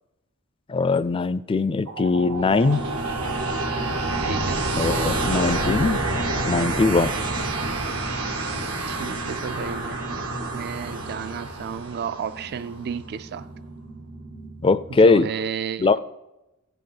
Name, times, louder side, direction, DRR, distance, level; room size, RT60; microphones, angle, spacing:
voice 1, 0.7-2.8 4.8-6.0 6.5-7.1 14.6-15.3 15.8-16.0, left 3 dB, 25° left, 0.3 m, -20 dB
sound 1, 1.6-15.0, right 2 dB, 85° right, 1.3 m, -28 dB
voice 2, 4.2-4.7 8.9-10.0 10.5-13.5 14.9-15.9, right 6 dB, 50° right, 0.3 m, -32 dB
15.5 x 5.5 x 5.8 m
head